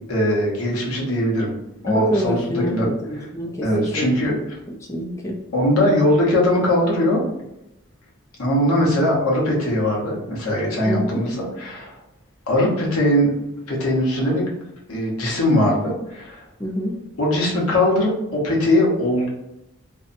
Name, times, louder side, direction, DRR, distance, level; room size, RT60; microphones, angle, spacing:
voice 1, 0.1-1.5 1.8-2.4 2.7-2.9 3.6-4.4 5.5-7.2 8.4-11.9 12.5-13.3 13.7-14.4 14.9-16.4 17.2-19.3, left 1 dB, 90° left, -3 dB, 0.8 m, -20 dB
voice 2, 1.9-4.1 4.7-5.3 10.9-11.3 16.6-17.0, equal, 15° left, -1 dB, 0.3 m, -27 dB
2.6 x 2.1 x 2.5 m, 0.87 s
head